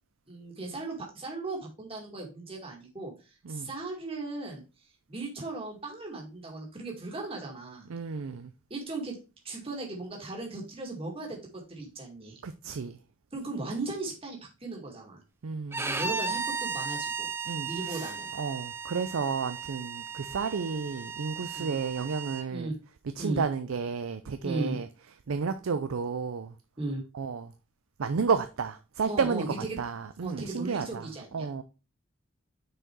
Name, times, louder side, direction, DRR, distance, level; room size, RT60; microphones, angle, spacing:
voice 1, 0.3-4.6 5.1-7.9 8.7-9.2 9.4-12.4 13.3-15.2 16.0-17.3 17.6-18.3 21.5-21.8 22.5-22.8 23.2-23.5 24.4-24.8 26.8-27.0 29.1-29.8 30.2-31.6, right 2 dB, 25° right, 2.0 m, -37 dB
voice 2, 7.9-8.5 12.4-13.0 15.4-16.0 17.5-22.7 23.2-24.9 25.3-26.5 27.1-27.5 28.0-31.6, right 5 dB, 90° right, 0.5 m, -32 dB
Bowed string instrument, 15.7-22.5, right 5 dB, 10° right, 0.4 m, -35 dB
6.3 x 4.7 x 4.5 m
head